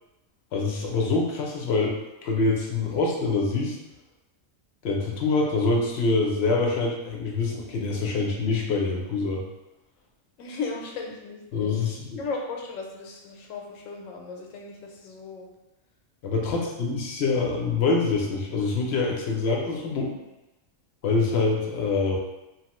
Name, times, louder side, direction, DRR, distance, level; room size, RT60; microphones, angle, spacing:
voice 1, 0.5-3.8 4.8-9.4 11.5-12.2 16.2-20.1 21.0-22.2, left 3 dB, 65° left, -1 dB, 0.8 m, -25 dB
voice 2, 10.4-11.9 12.2-15.5 16.5-16.8 19.8-20.2, left 4 dB, 90° left, 1 dB, 1.0 m, -36 dB
3.0 x 2.1 x 2.9 m, 0.97 s
omnidirectional pair, 1.3 m